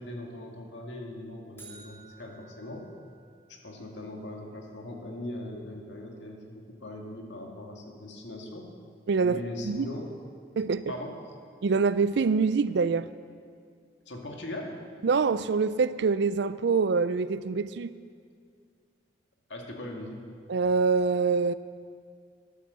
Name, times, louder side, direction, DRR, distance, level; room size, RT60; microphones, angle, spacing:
voice 1, 0.0-2.9 3.5-8.7 9.2-10.1 10.9-11.4 14.1-14.8 19.5-20.2, left 1 dB, 75° left, 1 dB, 2.0 m, -40 dB
sound 1, 1.6-3.7, right 4 dB, 15° left, 3.0 m, -53 dB
voice 2, 9.1-9.4 9.6-9.9 10.6-10.8 11.6-13.1 15.0-17.9 20.5-21.5, right 4 dB, 65° right, 15 dB, 0.4 m, -25 dB
12.0 x 9.3 x 6.9 m, 2.2 s
head